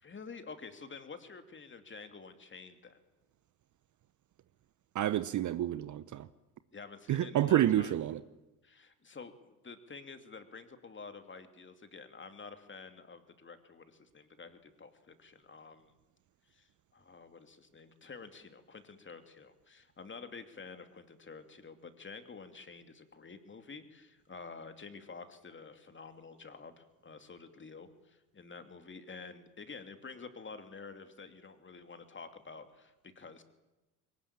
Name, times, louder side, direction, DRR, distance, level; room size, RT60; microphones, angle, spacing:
voice 1, 0.0-3.0 6.7-8.0 8.6-9.3 9.6-15.9 16.5-16.7 16.9-33.4, left 4 dB, 25° left, 2.7 m, -49 dB
voice 2, 4.9-6.3 7.1-8.2, right 12 dB, 40° right, 0.9 m, -29 dB
22.5 x 19.5 x 8.8 m
hypercardioid pair, 60°, 46 cm